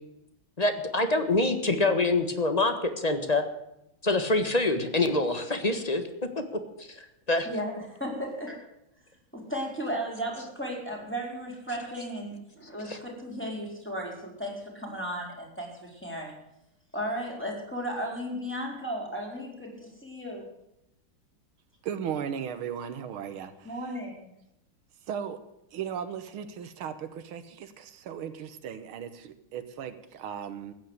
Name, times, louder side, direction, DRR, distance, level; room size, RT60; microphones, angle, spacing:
voice 1, 0.6-3.4 4.0-6.0 7.3-7.5 12.9-13.0, left 2 dB, 20° left, 8 dB, 1.4 m, -25 dB
voice 2, 7.4-8.6 9.3-16.3 16.9-20.5 23.6-24.3, equal, 5° left, -2 dB, 4.4 m, -35 dB
voice 3, 21.8-24.0 25.1-25.4 25.7-30.7, right 8 dB, 90° right, 10 dB, 2.0 m, -37 dB
15.0 x 10.0 x 8.1 m, 0.82 s
omnidirectional pair, 2.3 m